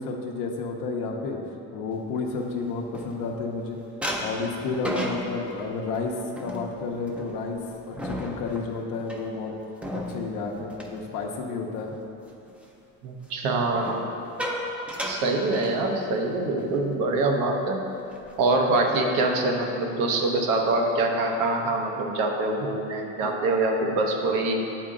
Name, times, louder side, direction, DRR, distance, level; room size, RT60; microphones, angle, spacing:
voice 1, 0.0-1.4 1.7-3.8 4.2-7.6 7.9-9.5 9.9-11.9 23.2-23.3, left 4 dB, 85° left, 0 dB, 0.8 m, -31 dB
sound 1, 2.1-3.6 4.0-11.8 12.2-12.5 13.7-16.3 16.6-16.8 17.1-17.4 17.9-18.5, equal, 5° right, 0.4 m, -35 dB
voice 2, 13.0-14.1 15.0-17.8 18.4-24.6, right 2 dB, 90° right, 2 dB, 0.9 m, -24 dB
8.4 x 4.4 x 3.7 m, 2.9 s
cardioid pair, 155°, 32 cm